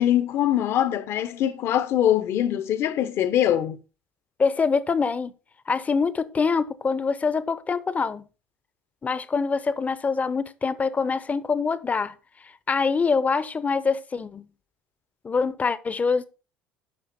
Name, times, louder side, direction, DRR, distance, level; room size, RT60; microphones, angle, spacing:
voice 1, 0.0-3.8, left 11 dB, 55° left, 1.0 m, -23 dB
voice 2, 4.4-5.3 5.7-8.3 9.0-12.1 12.7-14.5 15.2-16.2, left 5 dB, 25° left, 0.8 m, -24 dB
9.7 x 5.9 x 4.3 m
hypercardioid pair, 70°, 5 cm